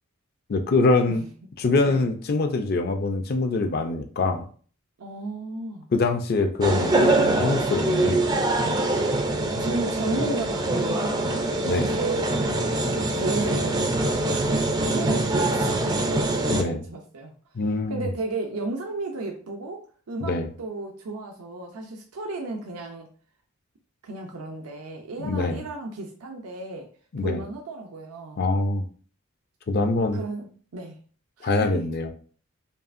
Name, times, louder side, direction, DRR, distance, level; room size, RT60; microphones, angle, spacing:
voice 1, 0.5-1.2 1.6-4.4 5.9-8.3 11.6-12.0 16.5-16.8 17.5-18.1 20.2-20.5 25.2-25.6 27.1-27.4 28.4-28.9 29.7-30.2 31.4-32.1, left 3 dB, 45° left, 6 dB, 0.4 m, -24 dB
voice 2, 5.0-5.9 6.7-7.0 9.6-12.3 13.1-13.8 14.8-17.3 17.9-20.3 20.6-23.1 24.0-26.9 27.2-28.4 30.1-31.0 31.4-31.8, right 2 dB, 90° right, 2 dB, 0.6 m, -33 dB
sound 1, 6.6-16.6, right 2 dB, 20° right, 0.4 m, -24 dB
5.3 x 2.4 x 2.5 m, 0.42 s
head